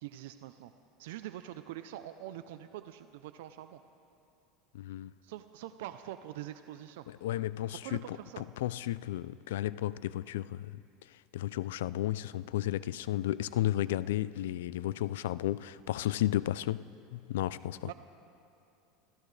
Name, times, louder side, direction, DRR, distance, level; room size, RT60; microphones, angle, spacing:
voice 1, 0.0-0.7 1.0-3.8 5.2-7.1 7.8-8.4 17.8-17.9, right 13 dB, 80° right, 0.6 m, -44 dB
voice 2, 4.7-5.1 7.1-17.9, left 13 dB, 90° left, 0.3 m, -33 dB
27.5 x 15.5 x 3.3 m
supercardioid pair, 135°, 0 cm